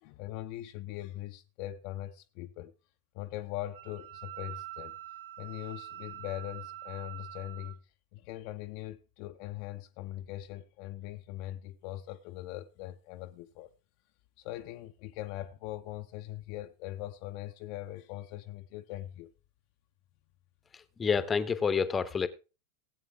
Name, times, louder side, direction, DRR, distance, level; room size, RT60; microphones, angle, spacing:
voice 1, 0.0-2.7 3.1-4.9 5.4-7.8 8.1-13.7 14.4-19.3, left 14 dB, 45° left, 0.6 m, -41 dB
Wind instrument woodwind instrument, 3.7-7.8, right 13 dB, 60° right, 0.6 m, -45 dB
voice 2, 20.7-22.3, left 6 dB, 20° left, 0.9 m, -29 dB
17.5 x 8.3 x 3.4 m
figure-of-eight pair, 90°, 0 cm